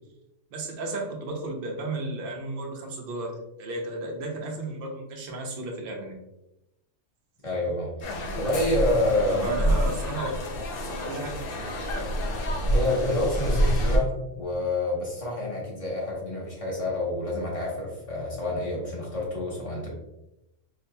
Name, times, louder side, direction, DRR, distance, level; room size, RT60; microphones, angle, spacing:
voice 1, 0.5-6.1 9.3-11.7, right 2 dB, 50° right, 0 dB, 0.8 m, -34 dB
voice 2, 7.4-9.5 12.6-19.9, left 2 dB, 25° left, -4 dB, 1.0 m, -28 dB
sound 1, 8.0-14.0, equal, 60° left, 0.6 m, -27 dB
4.7 x 2.7 x 2.2 m, 0.90 s
omnidirectional pair, 1.4 m